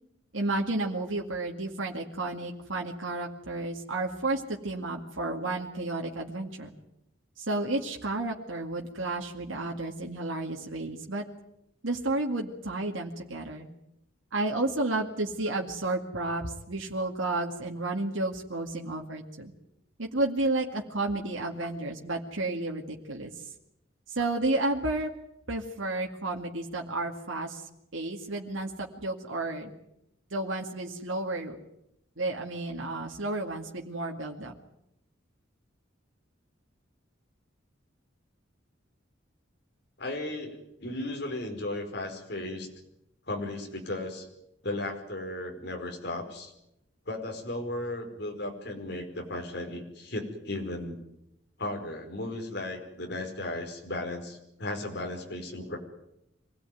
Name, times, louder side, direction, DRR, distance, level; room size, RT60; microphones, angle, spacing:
voice 1, 0.3-6.7 7.4-11.2 11.8-13.7 14.3-19.5 20.0-23.3 24.1-25.1 25.5-27.6 27.9-29.7 30.3-31.6 32.2-34.5, right 2 dB, 85° right, 0 dB, 2.3 m, -32 dB
voice 2, 40.0-42.7 43.3-44.3 44.6-46.5 47.1-51.0 51.6-55.8, left 1 dB, 60° left, 3 dB, 5.0 m, -35 dB
25.5 x 17.5 x 9.3 m, 0.84 s
head